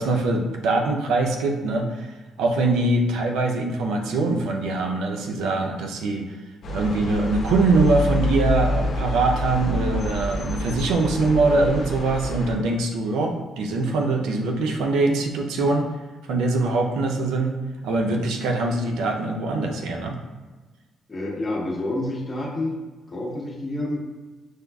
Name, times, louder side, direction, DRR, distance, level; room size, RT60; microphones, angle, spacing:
voice 1, 0.0-6.2 6.7-15.9 16.2-17.5 17.8-20.2, right 2 dB, 85° right, 2 dB, 0.5 m, -23 dB
sound 1, 6.6-12.5, left 1 dB, 60° left, 0.8 m, -27 dB
voice 2, 21.1-22.7 23.1-24.0, left 1 dB, 30° left, -2 dB, 1.1 m, -28 dB
6.4 x 2.3 x 2.3 m, 1.3 s
cardioid pair, 90°, 0 cm